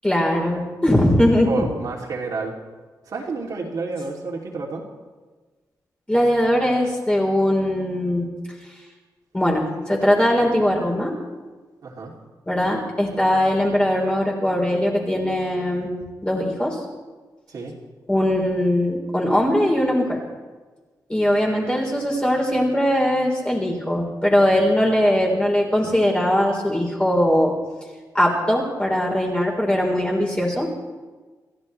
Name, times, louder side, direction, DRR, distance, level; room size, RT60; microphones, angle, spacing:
voice 1, 0.0-1.5 6.1-8.3 9.3-11.1 12.5-15.9 16.2-16.8 18.1-20.2 21.1-27.5 28.1-30.7, left 1 dB, 15° left, -2 dB, 3.9 m, -20 dB
voice 2, 1.2-2.5 3.1-4.9 11.8-12.1 17.5-17.7, right 3 dB, 60° right, -2 dB, 2.7 m, -30 dB
28.5 x 14.5 x 3.3 m, 1.3 s
wide cardioid pair, 150°, 7 cm